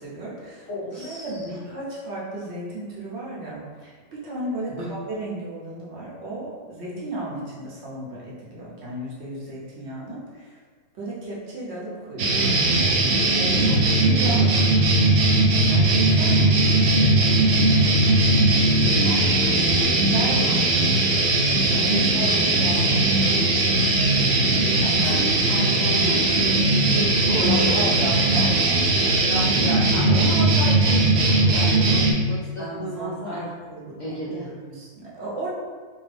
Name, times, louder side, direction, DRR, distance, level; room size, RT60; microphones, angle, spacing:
voice 1, 0.0-0.7 1.0-10.6 11.0-13.6 14.0-14.6 15.6-17.1 17.8-18.9 20.1-20.9 21.6-24.0 24.8-25.2 25.9-26.0 26.3-26.7 27.4-29.5 32.6-34.0 34.6-35.5, right 1 dB, 55° right, -6 dB, 0.9 m, -34 dB
voice 2, 0.7-1.4 4.7-4.9 13.6-14.5 18.7-20.6 22.3-22.9 25.0-26.6 26.9-27.8 29.3-33.4 34.0-34.5, equal, 90° left, -7 dB, 0.4 m, -32 dB
sound 1, 12.2-32.1, right 2 dB, 85° right, 0.5 m, -19 dB
2.7 x 2.6 x 3.3 m, 1.5 s
omnidirectional pair, 1.5 m